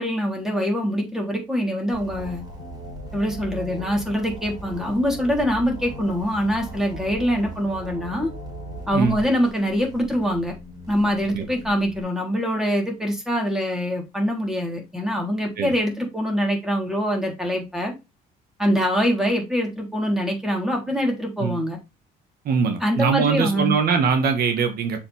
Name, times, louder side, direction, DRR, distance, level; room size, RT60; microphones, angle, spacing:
voice 1, 0.0-2.4 3.1-8.3 8.9-10.6 10.9-17.9 18.6-21.8 22.8-23.7, equal, 5° right, 1 dB, 3.6 m, -24 dB
sound 1, 1.9-12.0, equal, 25° right, 5.1 m, -38 dB
voice 2, 22.5-25.0, right 6 dB, 65° right, 6 dB, 1.7 m, -22 dB
6.8 x 5.5 x 3.5 m, 0.24 s
cardioid pair, 110°, 17 cm